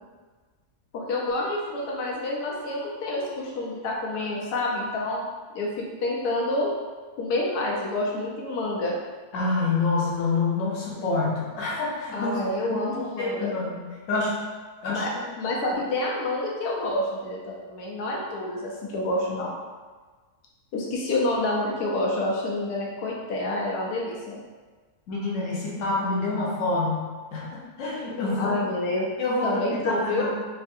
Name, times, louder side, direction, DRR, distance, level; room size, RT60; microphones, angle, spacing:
voice 1, 0.9-5.2 5.5-6.7 7.2-8.9 12.1-13.5 14.9-15.1 15.4-19.5 20.7-24.4 28.4-29.1 29.4-30.3, left 2 dB, 85° left, -3 dB, 1.2 m, -28 dB
voice 2, 9.3-12.3 12.6-13.8 14.1-14.3 14.8-15.0 25.1-27.1 27.3-28.5 29.2-30.3, left 3 dB, 60° left, -5 dB, 1.0 m, -27 dB
3.6 x 2.4 x 2.6 m, 1.4 s
omnidirectional pair, 1.6 m